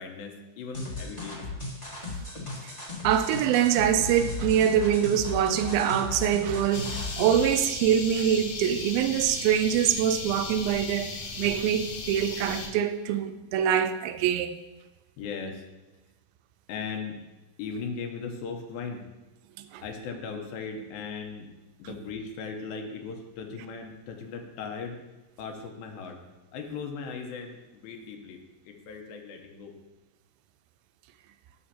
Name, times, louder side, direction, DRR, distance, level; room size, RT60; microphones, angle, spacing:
voice 1, 0.0-1.4 15.2-15.6 16.7-17.2 17.6-19.0 19.8-21.5 21.8-25.0 25.4-26.2 26.5-29.7, left 5 dB, 85° left, 2.7 m, -38 dB
sound 1, 0.7-7.5, left 2 dB, 45° left, 0.5 m, -36 dB
voice 2, 3.0-11.1 11.4-14.6 19.6-19.8, right 9 dB, 85° right, 2.3 m, -24 dB
sound 2, 6.7-12.7, left 4 dB, 65° left, 1.9 m, -37 dB
11.0 x 6.6 x 2.9 m
omnidirectional pair, 4.2 m